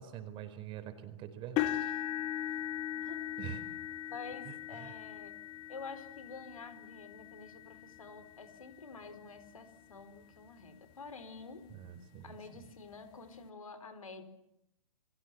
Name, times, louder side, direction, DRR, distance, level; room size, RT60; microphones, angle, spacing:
voice 1, 0.0-1.8 3.4-3.6 4.5-5.0 11.7-12.4, right 10 dB, 30° right, 10 dB, 4.6 m, -45 dB
sound 1, 1.6-9.6 10.2-10.5 10.9-11.0 12.4-12.5, left 12 dB, 30° left, 1.9 m, -39 dB
voice 2, 2.9-3.3 4.1-5.4 5.7-11.7 12.2-14.2, left 4 dB, 75° left, 10 dB, 4.7 m, -48 dB
30.0 x 23.0 x 7.6 m, 0.79 s
figure-of-eight pair, 120°, 18 cm